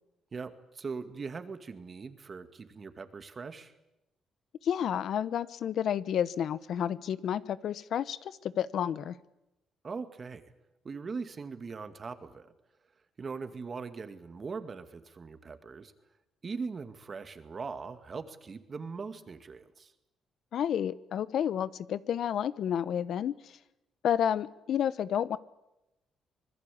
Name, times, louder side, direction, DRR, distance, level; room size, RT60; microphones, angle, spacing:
voice 1, 0.3-3.7 9.8-10.4 10.8-12.5 13.2-15.9 16.4-19.9, right 4 dB, 40° right, 10 dB, 2.3 m, -40 dB
voice 2, 4.6-9.2 20.5-23.5 24.0-25.4, left 9 dB, 70° left, 17 dB, 0.9 m, -30 dB
25.5 x 20.5 x 8.6 m, 0.93 s
cardioid pair, 90°, 0 cm